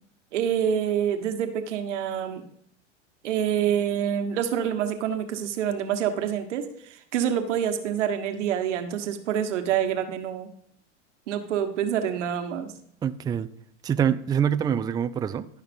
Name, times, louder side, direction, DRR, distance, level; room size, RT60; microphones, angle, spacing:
voice 1, 0.3-2.4 3.2-10.5 11.3-12.7, right 9 dB, 80° right, 6 dB, 1.4 m, -27 dB
voice 2, 13.0-13.5 13.8-15.5, right 8 dB, 10° right, 11 dB, 0.3 m, -25 dB
11.0 x 5.7 x 5.2 m, 0.69 s
hypercardioid pair, 100°, 35 cm